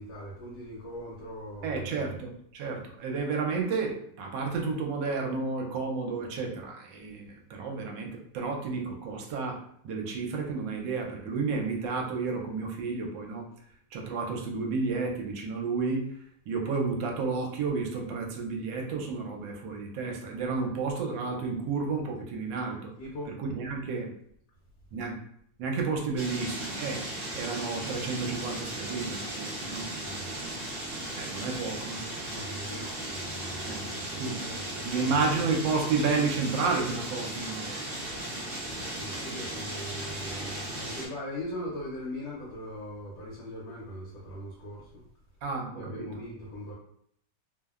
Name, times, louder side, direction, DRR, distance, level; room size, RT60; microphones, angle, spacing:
voice 1, 0.0-2.1 23.0-23.3 30.0-30.4 32.3-35.4 38.6-45.0 45.8-46.7, equal, 80° left, -6 dB, 1.4 m, -40 dB
voice 2, 1.6-13.5 13.9-16.1 16.5-22.9 23.4-24.1 24.9-25.2 25.6-27.1 27.3-29.9 31.2-32.0 33.6-33.9 34.2-34.4 34.8-37.8 45.4-46.1, right 4 dB, 80° right, 1 dB, 1.2 m, -31 dB
sound 1, 26.2-41.1, right 1 dB, 50° right, 0.6 m, -36 dB
3.2 x 2.1 x 2.3 m, 0.67 s
omnidirectional pair, 2.1 m